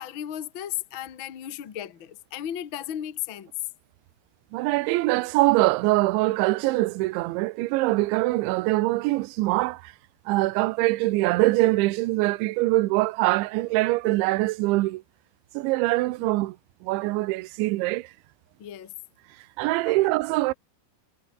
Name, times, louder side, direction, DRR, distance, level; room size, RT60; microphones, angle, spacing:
voice 1, 0.0-3.5 18.6-18.9 19.8-19.9, left 11 dB, 85° left, 1.1 m, -35 dB
voice 2, 4.5-9.9 10.3-15.0 15.5-16.6 16.8-18.1 19.6-20.5, right 20 dB, 80° right, 3.2 m, -23 dB
omnidirectional pair, 5.5 m